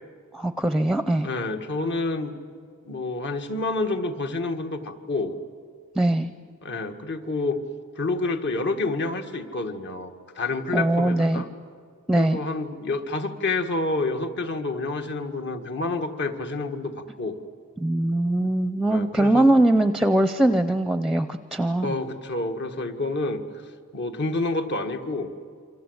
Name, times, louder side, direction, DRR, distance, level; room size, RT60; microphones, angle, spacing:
voice 1, 0.3-1.3 6.0-6.3 10.7-11.4 12.1-12.4 17.8-22.0, right 1 dB, ahead, 10 dB, 0.6 m, -21 dB
voice 2, 1.2-2.3 2.8-5.3 6.6-7.6 8.0-11.5 12.2-16.9 17.2-17.4 18.9-19.5 21.8-23.4 23.9-25.3, left 3 dB, 55° left, 6 dB, 1.7 m, -28 dB
27.5 x 25.5 x 8.0 m, 2.1 s
head